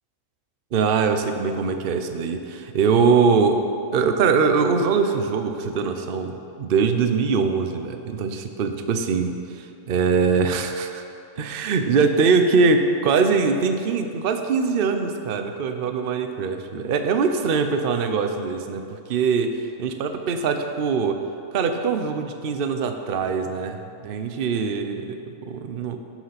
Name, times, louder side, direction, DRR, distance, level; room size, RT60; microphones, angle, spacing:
voice 1, 0.7-3.6 3.9-11.0 11.4-21.2 21.5-26.0, right 5 dB, 50° right, 6 dB, 0.8 m, -22 dB
15.0 x 6.1 x 5.8 m, 2.5 s
omnidirectional pair, 1.4 m